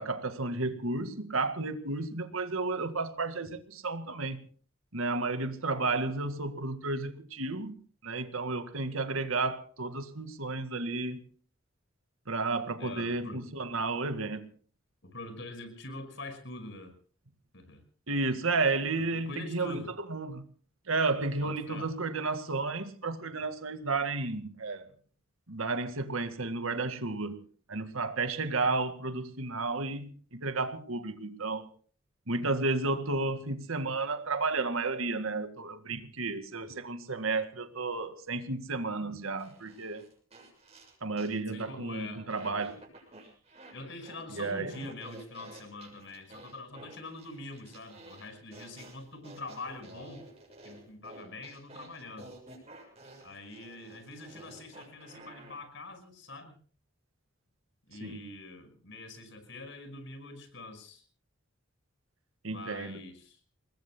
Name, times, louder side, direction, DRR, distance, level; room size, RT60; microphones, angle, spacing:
voice 1, 0.0-4.4 4.9-7.8 8.0-11.3 12.3-14.5 18.1-19.8 20.1-20.4 20.9-24.9 25.5-27.4 27.7-31.7 32.3-40.0 41.0-42.8 44.3-44.7 58.0-58.2 62.4-63.0, right 3 dB, 85° right, 1.9 m, -32 dB
voice 2, 12.8-13.4 15.0-17.0 17.5-17.8 19.2-19.9 21.4-21.9 41.5-42.7 43.7-50.3 50.6-52.3 53.2-56.6 57.9-61.0 62.5-63.4, left 2 dB, 60° left, 5.5 m, -44 dB
sound 1, 39.4-41.3 41.6-41.8 42.3-43.8 44.0-55.6, right 2 dB, 30° right, 7.4 m, -52 dB
28.5 x 20.5 x 2.2 m
head